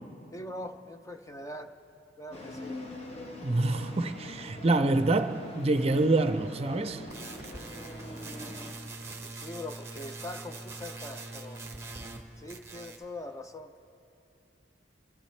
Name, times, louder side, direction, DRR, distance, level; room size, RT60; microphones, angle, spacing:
voice 1, 0.3-1.7 2.2-2.8 9.2-11.6 12.4-13.7, left 1 dB, 15° left, 0.5 m, -42 dB
sound 1, 2.3-8.7, left 1 dB, 35° left, 1.0 m, -43 dB
voice 2, 3.4-7.0, right 2 dB, 35° right, 0.6 m, -26 dB
sound 2, 7.1-12.2 12.5-13.1, right 3 dB, 15° right, 0.9 m, -43 dB
28.0 x 13.5 x 3.2 m
head